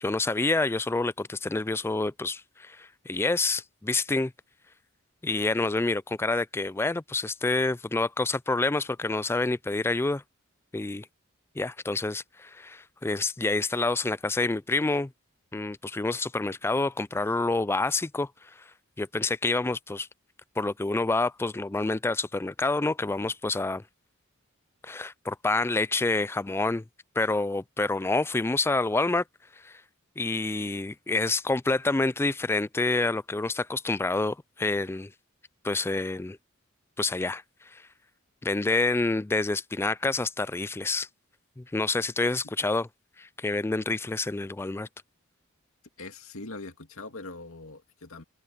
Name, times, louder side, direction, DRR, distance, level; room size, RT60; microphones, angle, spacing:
voice 1, 0.0-4.3 5.2-10.2 10.7-11.1 11.6-15.1 15.5-18.3 19.0-20.1 20.6-23.8 24.8-26.8 27.2-29.2 29.6-29.8 30.2-35.1 35.6-36.4 37.0-37.4 37.7-37.8 38.4-41.1 41.6-42.9 43.2-44.9, left 3 dB, 10° left, 0.3 m, -28 dB
voice 2, 46.0-48.2, left 3 dB, 85° left, 2.2 m, -42 dB
head